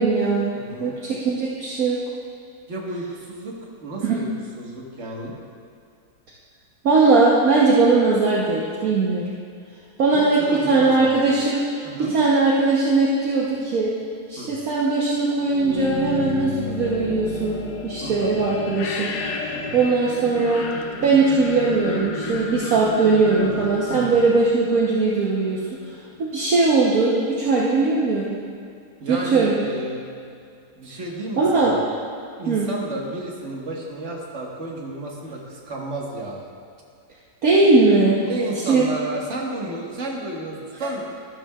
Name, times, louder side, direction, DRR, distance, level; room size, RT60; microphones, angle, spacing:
voice 1, 0.0-0.5 0.8-2.0 4.0-4.2 6.8-9.3 10.0-11.7 12.0-13.9 14.3-19.2 19.7-20.7 21.0-25.6 26.2-28.4 29.1-29.5 31.4-31.8 32.5-32.7 37.4-38.2 38.7-38.8, right 3 dB, 65° right, -5 dB, 1.4 m, -19 dB
voice 2, 0.5-0.9 2.7-4.3 4.6-5.4 10.1-11.3 11.8-12.1 14.4-14.5 18.0-18.4 19.5-19.8 23.4-24.3 29.0-30.0 30.8-31.8 32.4-36.5 38.2-41.0, right 2 dB, 50° right, -2 dB, 1.7 m, -32 dB
sound 1, 15.4-25.3, left 4 dB, 90° left, 1.4 m, -32 dB
12.5 x 12.5 x 2.4 m, 2.4 s
omnidirectional pair, 1.7 m